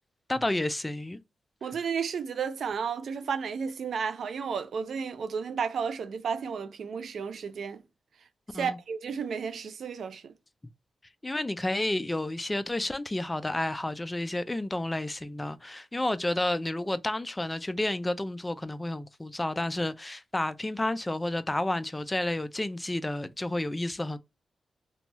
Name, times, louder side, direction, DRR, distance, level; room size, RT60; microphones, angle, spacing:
voice 1, 0.3-1.2 8.5-8.8 11.2-24.2, left 1 dB, 20° left, 0.3 m, -31 dB
voice 2, 1.6-7.8 8.5-10.3, right 6 dB, 80° right, 0.4 m, -32 dB
2.6 x 2.2 x 2.9 m
cardioid pair, 70°, 0 cm